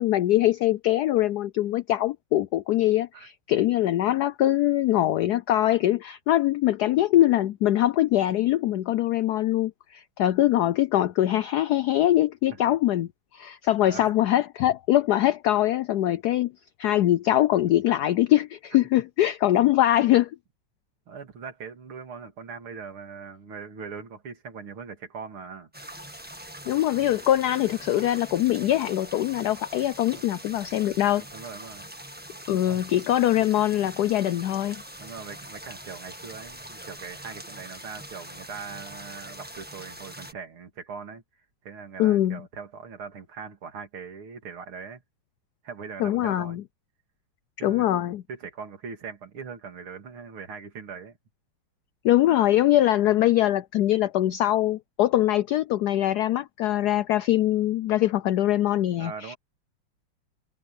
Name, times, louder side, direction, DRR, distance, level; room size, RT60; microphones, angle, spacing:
voice 1, 0.0-16.5 16.8-20.3 26.7-31.2 32.5-34.8 42.0-42.4 46.0-46.6 47.6-48.2 52.0-59.3, left 13 dB, 85° left, 0.8 m, -23 dB
voice 2, 13.8-14.2 21.1-25.7 30.1-30.3 31.2-31.9 32.7-33.1 35.0-41.2 41.6-45.0 45.6-46.6 47.6-47.9 48.3-51.2 59.0-59.4, right 5 dB, 85° right, 3.4 m, -41 dB
sound 1, 25.7-40.3, right 1 dB, 5° right, 1.3 m, -43 dB
omnidirectional pair, 2.3 m